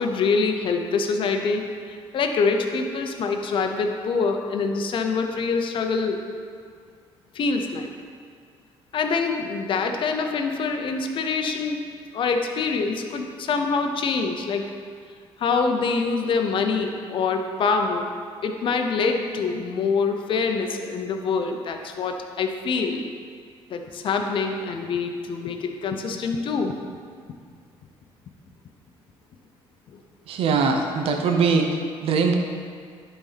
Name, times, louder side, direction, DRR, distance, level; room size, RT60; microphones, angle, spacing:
voice 1, 0.0-1.6 2.1-6.2 7.3-7.9 8.9-14.7 15.4-18.1 18.4-23.1 23.7-26.8, left 4 dB, 55° left, 4 dB, 0.7 m, -25 dB
voice 2, 30.3-31.8 32.0-32.4, right 5 dB, 70° right, 3 dB, 0.8 m, -21 dB
11.0 x 4.2 x 4.1 m, 2.1 s
cardioid pair, 95°, 10 cm